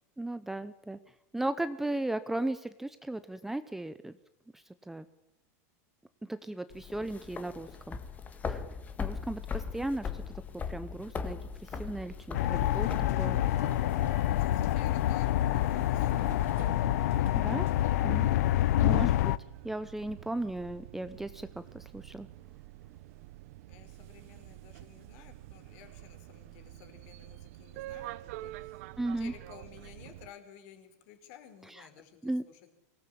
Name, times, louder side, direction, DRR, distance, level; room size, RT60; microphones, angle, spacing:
voice 1, 0.2-1.0 1.3-4.1 4.9-5.1 6.3-8.0 8.5-8.6 9.0-11.4 11.8-13.4 17.4-17.7 18.0-18.3 18.8-19.3 19.6-21.5 21.7-22.3 29.0-29.3 31.7-31.8 32.2-32.4, right 2 dB, 5° right, 12 dB, 0.8 m, -36 dB
sound 1, 6.7-16.6, left 6 dB, 15° left, 1.8 m, -40 dB
sound 2, 12.3-19.4, left 14 dB, 75° left, 0.8 m, -27 dB
sound 3, 12.4-30.3, right 16 dB, 60° right, 1.0 m, -48 dB
voice 2, 14.3-16.8 23.7-28.8 29.2-32.7, left 9 dB, 50° left, 7 dB, 4.8 m, -54 dB
24.5 x 18.0 x 8.6 m, 0.88 s
supercardioid pair, 160°, 9 cm